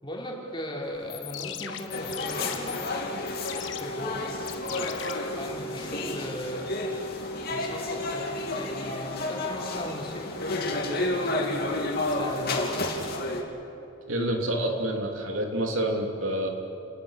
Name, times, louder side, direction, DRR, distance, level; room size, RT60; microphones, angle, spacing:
voice 1, 0.0-2.8 3.2-3.3 3.8-4.2 5.4-7.0 7.5-11.6 12.1-12.9, left 1 dB, 25° left, -2 dB, 3.9 m, -38 dB
sound 1, 0.9-5.9, left 10 dB, 65° left, 1.2 m, -40 dB
sound 2, 1.9-13.4, left 2 dB, 50° left, 2.9 m, -31 dB
voice 2, 14.1-16.5, right 1 dB, 85° right, 2 dB, 3.2 m, -28 dB
30.0 x 19.0 x 6.7 m, 3.0 s
head